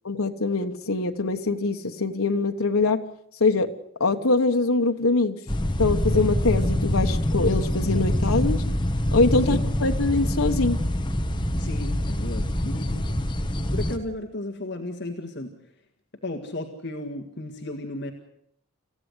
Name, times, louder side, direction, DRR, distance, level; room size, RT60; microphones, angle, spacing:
voice 1, 0.0-3.0 3.4-3.7 4.0-5.4 5.8-8.6 9.1-10.8, left 3 dB, 80° left, 4 dB, 1.2 m, -23 dB
sound 1, 5.5-14.0, left 1 dB, 20° left, 1.1 m, -25 dB
voice 2, 11.5-13.2 13.7-15.5 16.2-18.1, left 1 dB, 50° left, 3 dB, 1.9 m, -34 dB
27.5 x 14.5 x 8.1 m, 0.69 s
head